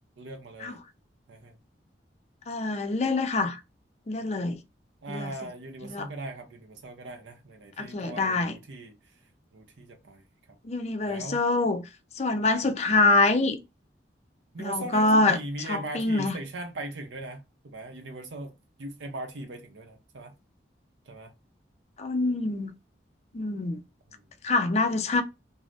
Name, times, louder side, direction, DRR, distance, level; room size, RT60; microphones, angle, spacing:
voice 1, 0.2-0.8 1.3-1.5 5.0-9.0 9.5-10.2 11.0-11.4 14.5-18.5 18.8-20.3 21.1-21.3 24.1-24.2, right 2 dB, 90° right, 0.6 m, -39 dB
voice 2, 2.5-3.6 4.1-4.6 5.1-5.3 5.8-6.1 7.8-8.6 10.6-11.8 12.2-13.6 14.6-15.4 15.7-16.4 22.0-22.8 23.3-23.8 24.4-25.2, left 2 dB, 35° left, 0.4 m, -25 dB
2.5 x 2.0 x 3.2 m
head